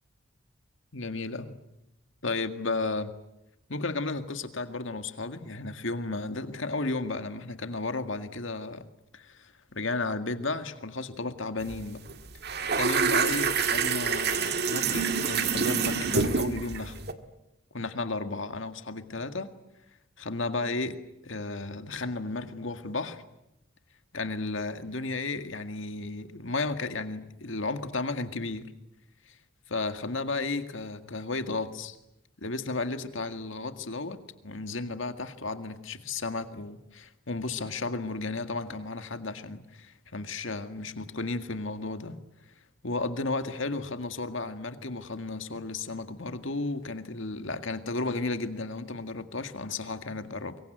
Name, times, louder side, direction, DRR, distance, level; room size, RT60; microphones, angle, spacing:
voice 1, 0.9-1.5 2.2-3.1 3.7-8.8 9.1-12.0 12.8-17.0 17.7-19.5 20.2-21.0 21.2-23.2 24.1-28.7 29.3-29.4 29.7-32.0 32.4-42.2 42.8-50.6, left 3 dB, 70° left, 8 dB, 1.9 m, -33 dB
sound 1, 11.6-11.8 12.1-17.1, right 5 dB, 50° right, 1.8 m, -27 dB
25.0 x 23.0 x 9.2 m, 0.89 s
head